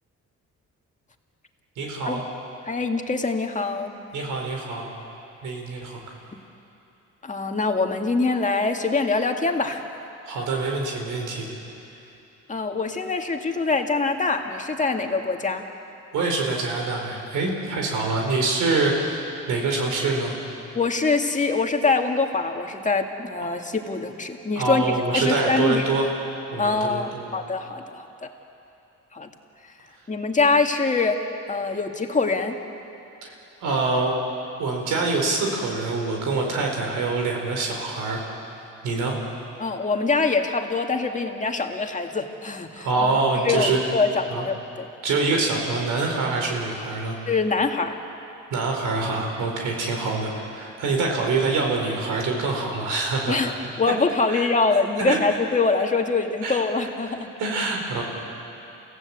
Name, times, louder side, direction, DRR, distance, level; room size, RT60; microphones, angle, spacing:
voice 1, 1.8-2.2 4.1-4.9 5.4-6.0 10.2-11.5 16.1-20.3 24.6-26.1 26.5-27.4 33.2-33.3 33.6-34.1 34.6-38.2 38.8-39.2 42.8-43.8 44.3-44.4 45.0-47.2 48.5-53.4 53.9-54.0 54.3-54.5 55.0-55.2 56.4-56.6 57.4-58.0, right 3 dB, 85° right, 1 dB, 4.5 m, -25 dB
voice 2, 2.7-3.9 7.2-9.8 12.5-15.6 20.7-24.8 25.1-25.8 26.6-28.3 29.1-29.3 30.1-32.6 39.6-42.9 43.4-44.9 47.3-48.0 53.3-53.5 53.8-57.3, left 4 dB, 25° left, 4 dB, 2.1 m, -24 dB
29.0 x 16.0 x 8.3 m, 2.9 s
cardioid pair, 90°, 30 cm